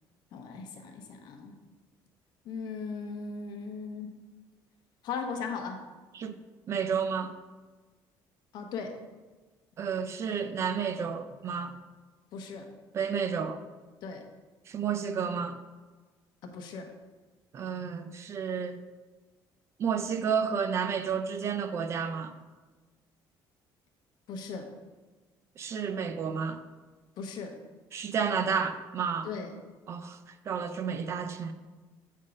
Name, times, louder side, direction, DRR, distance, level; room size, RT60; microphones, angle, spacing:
voice 1, 0.3-1.5 2.4-4.1 5.0-5.8 8.5-8.9 12.3-12.7 14.0-14.2 16.4-16.9 24.3-24.7 27.2-27.6 29.2-29.5, left 5 dB, 60° left, 4 dB, 0.9 m, -38 dB
voice 2, 6.7-7.3 9.8-11.8 12.9-13.6 14.7-15.6 17.5-18.8 19.8-22.3 25.6-26.6 27.9-29.3 29.9-30.2 30.5-31.5, right 6 dB, 35° right, 10 dB, 0.4 m, -31 dB
8.1 x 3.6 x 5.1 m, 1.3 s
cardioid pair, 165°, 8 cm